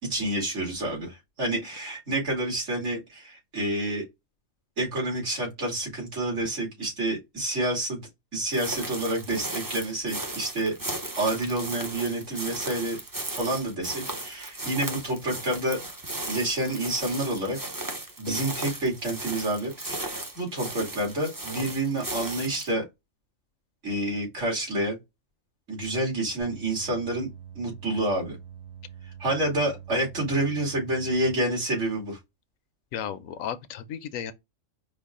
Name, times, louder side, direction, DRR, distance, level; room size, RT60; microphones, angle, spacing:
voice 1, 0.0-4.0 4.8-8.0 8.3-10.7 11.2-13.0 13.3-15.8 16.3-17.6 18.2-22.8 23.8-25.0 25.7-27.3 27.5-28.4 29.2-32.2, right 1 dB, 65° right, 2.8 m, -28 dB
sound 1, 8.5-22.7, right 2 dB, 20° right, 0.6 m, -36 dB
sound 2, 26.4-31.3, right 9 dB, 45° right, 2.4 m, -45 dB
voice 2, 32.9-34.3, left 8 dB, 80° left, 1.0 m, -34 dB
5.1 x 2.3 x 3.6 m
omnidirectional pair, 1.4 m